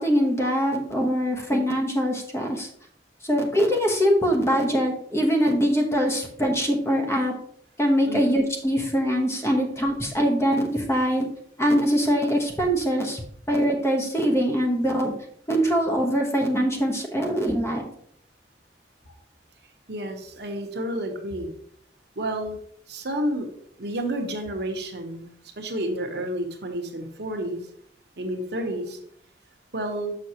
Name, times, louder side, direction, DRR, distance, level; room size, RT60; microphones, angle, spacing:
voice 1, 0.0-2.7 3.2-7.3 7.8-11.3 11.6-13.2 13.5-15.1 15.5-17.8, equal, 15° left, 1 dB, 1.0 m, -23 dB
voice 2, 19.9-21.5 22.2-22.6 22.9-23.5 23.8-25.3 25.6-27.6 28.2-29.0 29.7-30.2, right 1 dB, 65° right, 4 dB, 1.0 m, -30 dB
6.4 x 6.2 x 2.9 m, 0.64 s
head